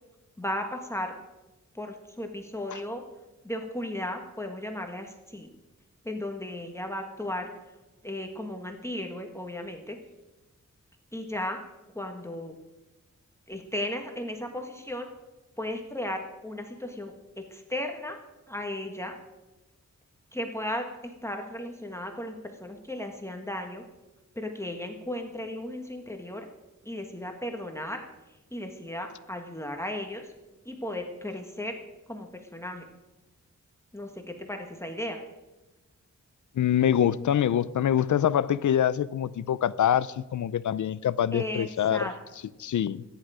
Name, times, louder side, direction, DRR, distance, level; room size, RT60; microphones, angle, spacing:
voice 1, 0.4-1.1 1.7-3.0 3.4-5.5 6.0-7.5 8.0-10.0 11.1-11.6 11.9-12.5 13.5-15.1 15.6-18.2 18.5-19.2 20.3-23.8 24.3-26.5 26.8-28.0 28.5-30.3 30.6-31.8 32.1-32.9 33.9-35.2 41.3-42.1, left 1 dB, 10° left, 1.5 m, -35 dB
voice 2, 36.5-42.1 42.6-43.0, left 10 dB, 85° left, 0.6 m, -25 dB
25.5 x 10.5 x 5.0 m
wide cardioid pair, 120°, 29 cm